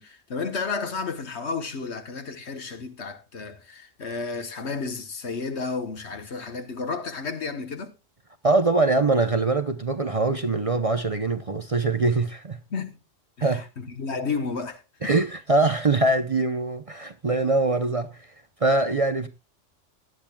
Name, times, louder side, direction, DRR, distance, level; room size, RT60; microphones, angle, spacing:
voice 1, 0.0-7.9 12.7-13.0 13.4-15.1, left 4 dB, 60° left, 1.5 m, -32 dB
voice 2, 8.4-12.6 13.4-13.7 15.0-18.1 18.6-19.3, right 3 dB, 35° right, 0.7 m, -23 dB
17.5 x 10.5 x 2.3 m
omnidirectional pair, 1.3 m